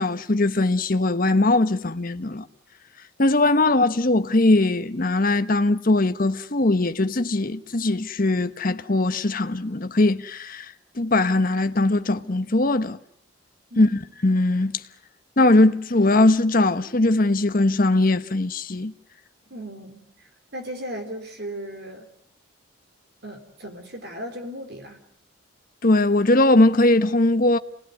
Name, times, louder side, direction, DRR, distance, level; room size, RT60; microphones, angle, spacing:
voice 1, 0.0-2.4 3.2-10.7 11.0-13.0 13.8-14.8 15.4-18.9 25.8-27.6, left 2 dB, 45° left, 1.0 m, -20 dB
voice 2, 13.7-14.1 19.5-22.1 23.2-25.0, equal, 50° right, 4.1 m, -36 dB
28.0 x 19.5 x 9.6 m
head